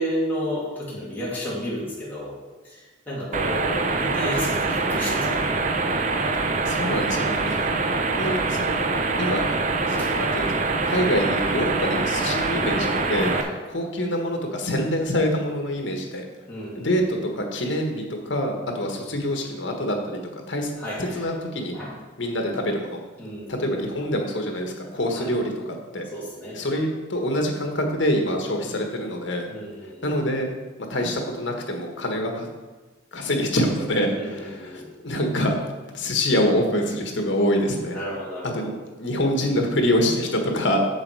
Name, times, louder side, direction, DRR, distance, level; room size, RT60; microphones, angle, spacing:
voice 1, 0.0-2.4 2.6-5.6 7.1-7.6 10.0-10.1 13.3-13.6 16.5-17.0 20.8-21.3 21.7-21.9 23.2-23.9 25.1-25.3 26.1-26.6 29.5-30.2 34.0-34.9 37.9-38.7, equal, 10° left, -7 dB, 2.5 m, -32 dB
sound 1, 3.3-13.4, right 3 dB, 40° right, 0.6 m, -24 dB
voice 2, 6.6-7.9 8.2-8.7 9.2-9.5 9.8-13.3 13.7-16.3 16.7-20.2 20.5-20.7 21.0-21.7 22.2-23.0 23.5-26.1 26.5-29.5 30.0-30.5 30.8-32.5 33.1-35.6 35.9-38.0 38.5-38.7 39.0-40.8, equal, 70° left, 3 dB, 1.4 m, -25 dB
7.3 x 7.1 x 4.8 m, 1.3 s
head